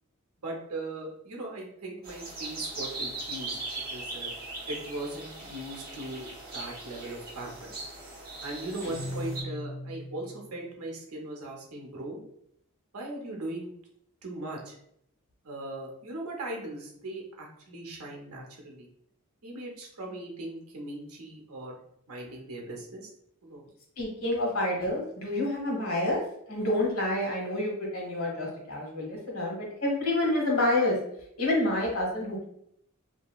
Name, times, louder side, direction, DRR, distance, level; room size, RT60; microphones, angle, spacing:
voice 1, 0.4-3.6 3.9-4.3 4.7-7.8 8.4-12.2 12.9-13.7 14.2-14.8 15.4-18.9 19.4-21.8 22.1-23.1 23.4-23.6, right 1 dB, 80° right, 0 dB, 0.8 m, -39 dB
sound 1, 2.0-9.4, right 2 dB, 45° right, 0.9 m, -39 dB
Guitar, 8.8-10.5, equal, 50° left, 0.5 m, -38 dB
voice 2, 24.0-26.2 26.5-31.0 31.4-32.4, left 1 dB, 90° left, -2 dB, 1.2 m, -28 dB
2.8 x 2.7 x 2.3 m, 0.72 s
head